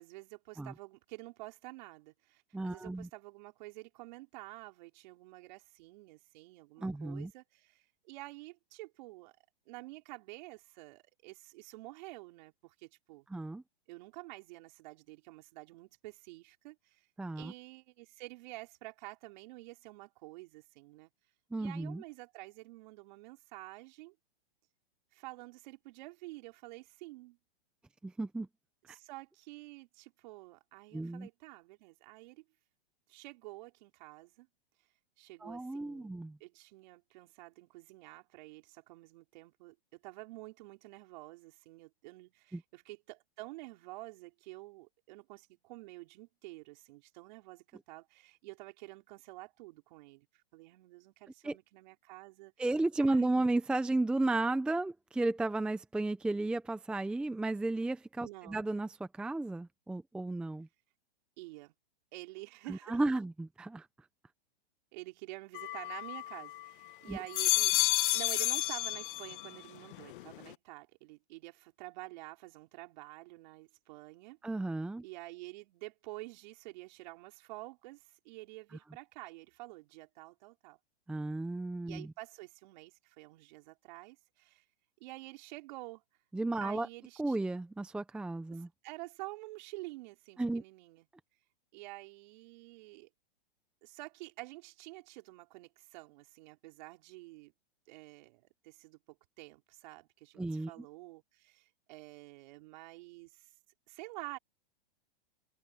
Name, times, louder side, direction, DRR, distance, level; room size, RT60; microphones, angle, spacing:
voice 1, 0.0-9.3 9.7-13.3 13.9-17.1 17.3-21.1 21.6-24.1 25.1-27.4 28.9-32.4 33.1-34.5 35.2-36.1 36.4-52.5 53.0-53.4 58.2-58.6 61.4-61.7 62.1-63.0 64.9-67.7 68.1-74.4 75.0-80.8 81.9-84.6 85.0-86.0 86.6-87.4 88.5-91.1 91.7-93.1 93.8-97.5 97.9-103.5 103.9-104.4, right 21 dB, 50° right, 5.1 m, -49 dB
voice 2, 2.5-3.1 6.8-7.3 13.3-13.6 17.2-17.5 21.5-22.0 28.0-28.5 30.9-31.3 35.4-36.4 42.5-42.6 51.4-51.6 52.6-60.7 62.7-63.9 67.1-67.2 74.4-75.0 81.1-82.1 86.3-86.9 87.2-88.7 90.4-90.6 100.4-100.7, right 2 dB, 5° right, 0.7 m, -33 dB
sound 1, 65.5-66.7 67.1-69.6 69.9-70.5, left 16 dB, 60° left, 1.4 m, -31 dB
hypercardioid pair, 145°, 30 cm